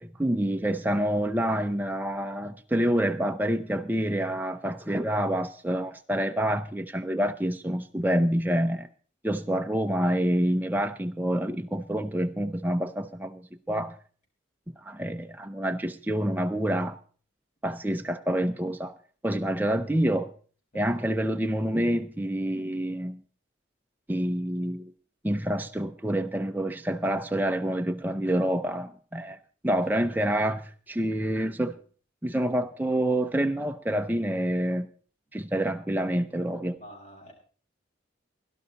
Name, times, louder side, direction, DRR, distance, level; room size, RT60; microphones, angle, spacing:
voice 1, 0.0-8.9 9.2-13.4 13.7-14.0 14.8-17.0 17.6-18.9 19.2-20.3 20.7-23.2 24.1-24.9 25.2-29.4 29.6-30.6 30.9-31.8 32.2-34.9 35.3-36.8, right 1 dB, 10° right, 6 dB, 0.7 m, -27 dB
voice 2, 20.7-21.2 29.7-30.1 36.8-37.3, equal, 40° left, 0 dB, 6.0 m, -49 dB
17.5 x 12.0 x 4.1 m, 0.41 s
head